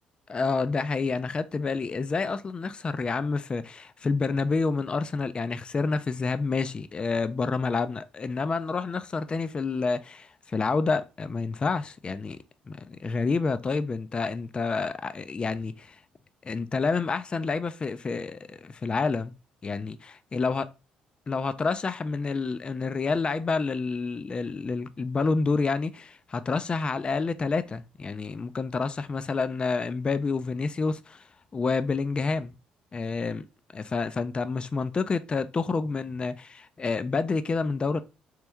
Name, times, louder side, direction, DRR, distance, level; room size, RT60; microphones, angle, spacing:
voice 1, 0.3-12.4 12.7-16.0 16.4-19.3 19.6-20.7 21.3-31.2 31.5-32.5 32.9-33.4 33.7-38.0, left 4 dB, 30° left, 0.3 m, -28 dB
3.3 x 3.1 x 3.4 m
supercardioid pair, 65°, 3 cm